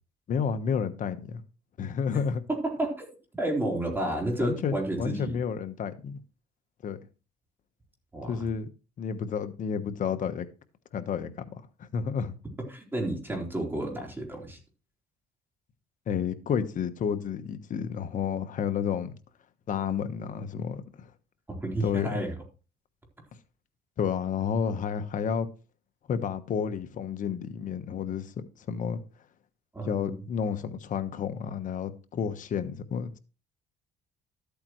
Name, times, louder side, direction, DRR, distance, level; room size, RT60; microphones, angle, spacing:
voice 1, 0.3-1.4 1.8-2.4 4.4-6.2 6.8-7.0 8.3-8.7 9.0-10.5 10.9-11.3 11.8-12.3 16.1-19.1 19.7-21.1 21.8-22.2 24.0-25.5 26.1-29.0 29.8-33.2, left 7 dB, 50° left, 1.2 m, -30 dB
voice 2, 2.6-5.4 8.1-8.3 12.7-14.6 21.5-22.3 29.7-30.2, right 1 dB, 10° right, 4.0 m, -31 dB
13.0 x 8.5 x 3.2 m
cardioid pair, 110°, 17 cm